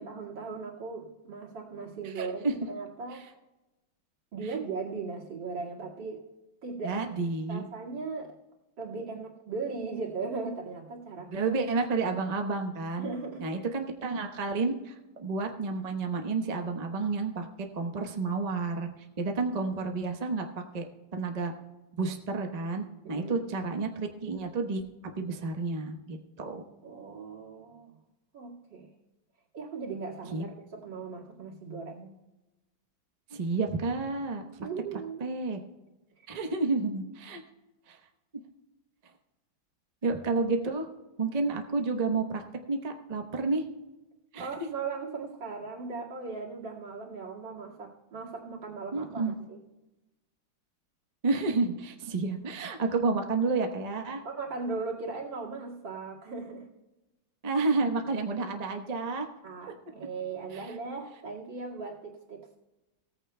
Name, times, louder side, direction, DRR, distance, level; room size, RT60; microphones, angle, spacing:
voice 1, 0.0-3.2 4.3-6.2 6.6-6.9 7.5-8.3 8.8-11.3 13.0-13.5 23.0-23.5 26.4-28.0 28.3-28.9 29.5-32.1 34.6-35.3 44.4-49.6 54.2-56.7 59.4-62.6, right 4 dB, 65° right, -4 dB, 2.8 m, -38 dB
voice 2, 2.0-2.5 6.8-7.6 11.3-13.1 13.4-17.5 17.7-18.9 19.2-20.5 20.7-20.8 21.1-21.5 22.0-24.8 25.2-26.6 30.3-30.4 33.3-34.4 35.2-35.6 36.3-37.4 37.9-38.0 40.0-40.9 41.2-42.4 42.7-43.7 44.3-44.7 48.9-49.4 51.2-54.2 57.4-59.3, right 3 dB, 35° right, 4 dB, 0.6 m, -30 dB
17.5 x 14.5 x 2.2 m, 1.1 s
omnidirectional pair, 2.2 m